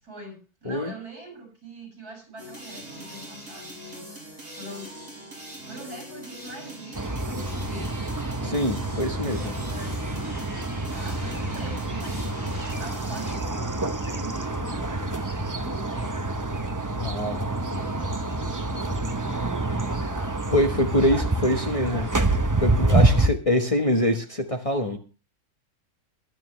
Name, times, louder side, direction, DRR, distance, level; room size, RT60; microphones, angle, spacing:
voice 1, 0.0-5.0 5.6-7.9 9.2-10.3 10.9-12.2 12.6-16.2 17.7-20.4 21.1-22.2, right 1 dB, 80° right, 2 dB, 7.1 m, -43 dB
sound 1, 2.4-13.3, right 1 dB, 55° right, 7.2 m, -41 dB
sound 2, 6.9-23.3, right 2 dB, 25° right, 0.4 m, -27 dB
voice 2, 8.4-9.4 16.9-17.4 20.5-22.1 22.6-25.0, left 1 dB, 25° left, 3 dB, 1.2 m, -24 dB
22.0 x 9.1 x 3.2 m, 0.33 s
omnidirectional pair, 1.6 m